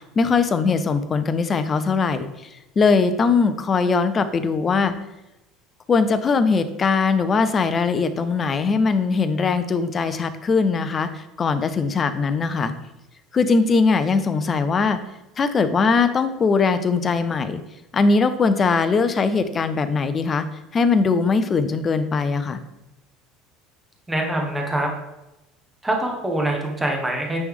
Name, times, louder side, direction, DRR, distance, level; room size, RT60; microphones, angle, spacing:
voice 1, 0.2-2.3 2.8-4.9 5.9-12.7 13.3-15.0 15.4-17.6 17.9-20.4 20.7-22.6, left 4 dB, 20° left, 11 dB, 0.4 m, -20 dB
voice 2, 24.1-24.9 25.8-27.4, right 1 dB, 5° right, 1 dB, 0.9 m, -24 dB
9.3 x 3.1 x 3.6 m, 0.97 s
cardioid pair, 175°, 0 cm